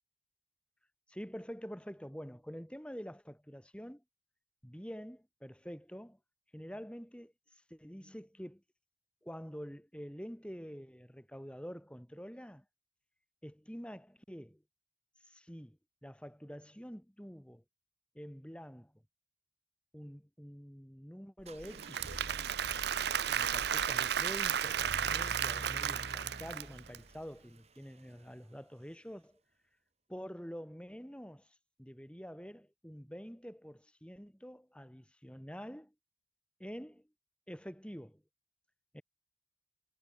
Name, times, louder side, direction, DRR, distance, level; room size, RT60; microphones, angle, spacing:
voice 1, 1.1-4.0 4.6-6.2 6.5-8.6 9.2-12.6 13.4-14.6 15.2-17.6 18.1-18.9 19.9-22.0 23.3-29.4 30.1-35.9 36.6-37.1 37.5-38.2 38.9-39.0, equal, 5° left, 6.8 m, -47 dB
sound 1, 21.4-28.3, right 1 dB, 30° right, 3.2 m, -48 dB
Applause / Crowd, 21.6-27.0, right 9 dB, 55° right, 0.6 m, -33 dB
head